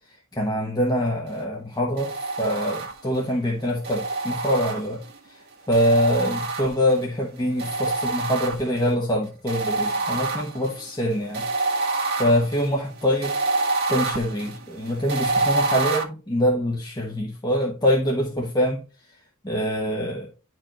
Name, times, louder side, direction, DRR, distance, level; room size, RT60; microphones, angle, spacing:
voice 1, 0.3-5.0 5.7-11.5 12.2-13.4 13.9-18.8 19.4-20.3, equal, 20° left, 1.0 m, -24 dB
sound 1, 2.0-3.2 3.8-5.2 5.7-7.1 7.6-8.9 9.5-16.0, right 3 dB, 50° right, 1.6 m, -27 dB
10.5 x 4.5 x 3.0 m
head